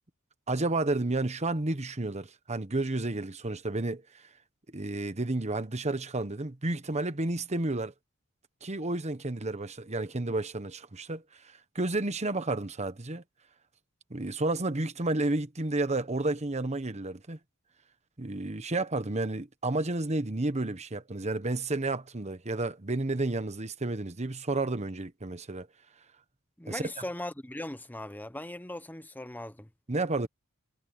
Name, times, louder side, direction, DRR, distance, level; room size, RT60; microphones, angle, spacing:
voice 1, 0.5-4.0 4.7-7.9 8.6-11.2 11.7-13.2 14.1-17.4 18.2-25.7 26.7-26.8 29.9-30.3, right 2 dB, 30° right, 1.2 m, -31 dB
voice 2, 26.6-29.7, left 1 dB, 10° left, 0.9 m, -39 dB
head